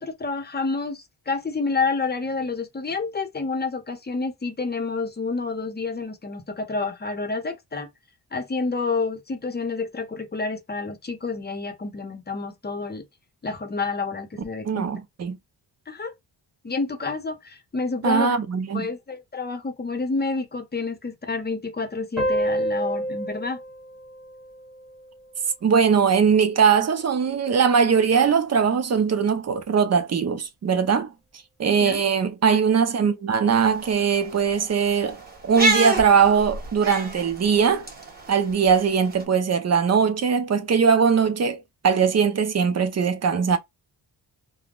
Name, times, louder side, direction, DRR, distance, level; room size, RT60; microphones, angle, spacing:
voice 1, 0.0-7.9 8.3-13.0 13.4-14.9 15.9-16.1 16.6-18.4 18.7-23.6 31.8-32.0, left 4 dB, 25° left, 0.7 m, -29 dB
voice 2, 14.6-15.4 18.0-18.9 25.6-31.1 31.6-35.2 35.4-37.9 38.3-43.6, right 6 dB, 40° right, 0.6 m, -20 dB
sound 1, 22.2-25.3, right 1 dB, ahead, 1.1 m, -28 dB
sound 2, 33.5-39.2, right 2 dB, 20° right, 1.2 m, -29 dB
3.4 x 2.1 x 2.3 m
wide cardioid pair, 125°, 43 cm